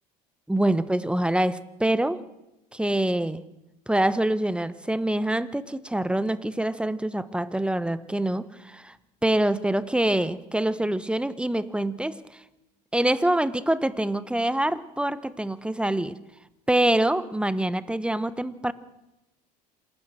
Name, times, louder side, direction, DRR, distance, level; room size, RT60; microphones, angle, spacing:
voice 1, 0.5-2.2 2.7-3.4 3.9-9.0 9.2-12.2 12.9-16.2 16.7-18.7, right 1 dB, 5° right, 16 dB, 1.1 m, -25 dB
27.5 x 13.0 x 7.7 m, 0.96 s
hypercardioid pair, 75°, 21 cm